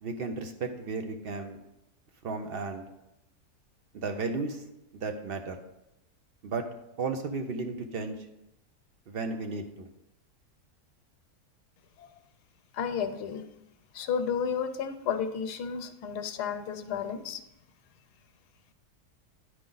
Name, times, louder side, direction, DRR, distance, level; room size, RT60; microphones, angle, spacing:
voice 1, 0.0-1.6 2.2-2.8 3.9-4.6 4.9-5.6 6.4-6.6 7.0-8.3 9.1-9.9, right 4 dB, 60° right, 5 dB, 0.6 m, -34 dB
voice 2, 12.7-13.5 13.9-17.4, left 7 dB, 90° left, 9 dB, 1.2 m, -32 dB
10.5 x 4.7 x 3.9 m, 0.89 s
omnidirectional pair, 1.7 m